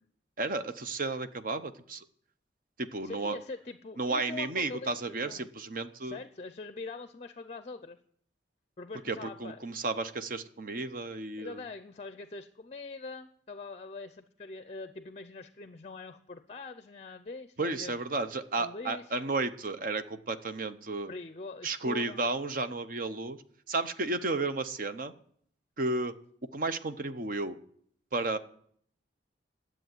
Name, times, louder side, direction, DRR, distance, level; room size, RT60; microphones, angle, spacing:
voice 1, 0.4-2.0 2.8-3.4 4.0-6.2 9.1-11.6 17.6-21.1 21.6-23.4 23.7-25.1 25.8-26.1 26.5-27.6 28.1-28.4, right 3 dB, 50° right, 10 dB, 0.8 m, -33 dB
voice 2, 3.0-5.5 6.0-8.0 8.8-9.7 11.4-18.0 18.6-19.3 21.1-22.2, left 3 dB, 35° left, 11 dB, 0.5 m, -43 dB
10.5 x 7.6 x 9.3 m, 0.64 s
head